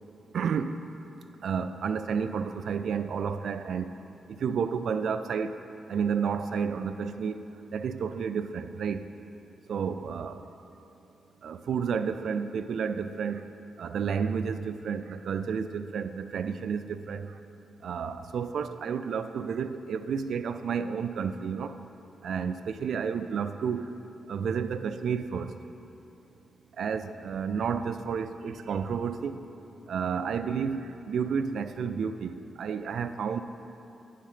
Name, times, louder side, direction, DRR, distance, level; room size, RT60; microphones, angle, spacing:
voice 1, 0.3-0.8 1.4-3.9 4.3-5.6 5.9-7.4 7.7-9.0 9.7-10.4 11.4-13.4 13.8-17.4 17.8-21.8 22.2-23.9 24.3-25.5 26.8-29.4 29.9-33.4, right 6 dB, 75° right, 10 dB, 0.3 m, -31 dB
10.0 x 5.1 x 5.6 m, 2.9 s
cardioid pair, 65°, 0 cm